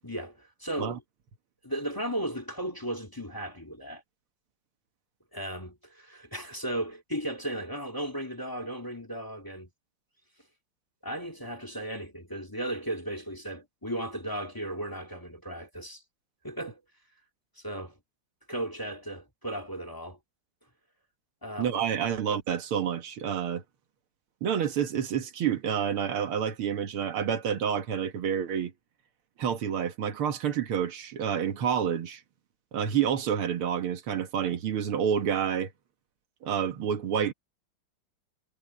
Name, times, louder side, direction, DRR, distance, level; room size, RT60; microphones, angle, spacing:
voice 1, 0.0-1.0 1.6-4.0 5.3-9.7 11.0-16.0 16.4-16.8 17.6-18.0 18.5-20.2 21.4-21.7, right 1 dB, 10° left, 2.2 m, -35 dB
voice 2, 21.6-23.6 24.4-28.7 29.4-32.2 32.7-35.7 36.4-37.3, right 8 dB, 85° right, 2.3 m, -28 dB
omnidirectional pair, 2.3 m